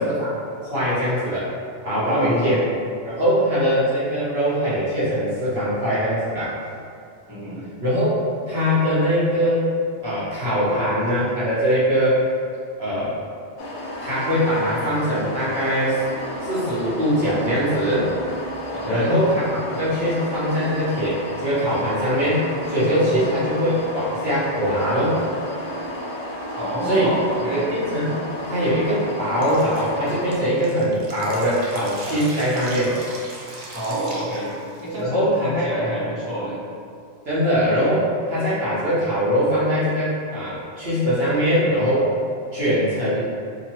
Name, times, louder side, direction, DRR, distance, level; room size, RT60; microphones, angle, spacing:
voice 1, 0.0-1.5 1.8-2.6 3.0-6.6 7.8-8.2 8.5-9.7 10.0-12.2 12.8-13.2 14.0-16.0 16.4-18.1 18.8-25.2 26.8-27.1 27.7-28.1 28.5-33.0 35.0-35.7 37.2-42.1 42.5-43.3, equal, 60° right, -11 dB, 1.0 m, -22 dB
voice 2, 2.1-2.6 7.3-7.6 10.8-10.9 18.7-19.1 23.0-23.3 26.6-27.7 33.7-34.5 34.8-36.6, equal, 20° right, -11 dB, 0.8 m, -28 dB
sound 1, 13.6-30.4, equal, 65° left, 0.7 m, -32 dB
Drip, 29.4-35.0, right 2 dB, 80° right, 0.3 m, -38 dB
2.9 x 2.2 x 2.9 m, 2.4 s
omnidirectional pair, 1.3 m